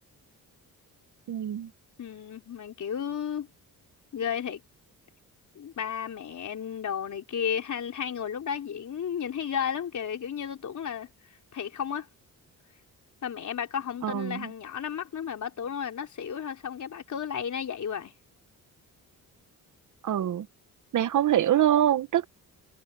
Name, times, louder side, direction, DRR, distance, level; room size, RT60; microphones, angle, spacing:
voice 1, 1.3-1.7 14.0-14.5 20.0-20.5 20.9-22.3, right 11 dB, 60° right, 0.9 m, -24 dB
voice 2, 2.0-3.5 4.1-4.6 5.6-11.1 11.5-12.1 13.2-18.1, left 8 dB, 55° left, 4.0 m, -33 dB
cardioid pair, 120°, 34 cm